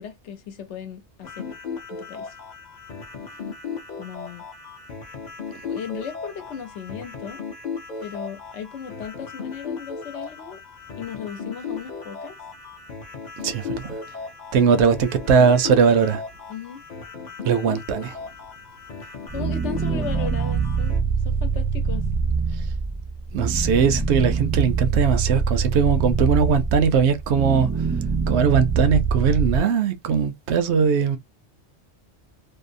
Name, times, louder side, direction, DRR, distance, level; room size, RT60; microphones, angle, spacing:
voice 1, 0.0-1.5 1.9-2.4 4.0-4.4 5.6-7.4 8.0-10.6 10.9-12.4 14.6-14.8 16.5-16.8 19.0-22.1, left 7 dB, 85° left, 1.0 m, -36 dB
sound 1, 1.2-21.0, left 5 dB, 50° left, 0.6 m, -36 dB
voice 2, 13.4-13.9 14.5-16.2 17.4-18.2 23.3-27.7 28.3-31.2, right 6 dB, 75° right, 0.8 m, -20 dB
sound 2, 19.3-29.6, right 5 dB, 25° right, 0.4 m, -24 dB
2.7 x 2.0 x 2.5 m
omnidirectional pair, 1.2 m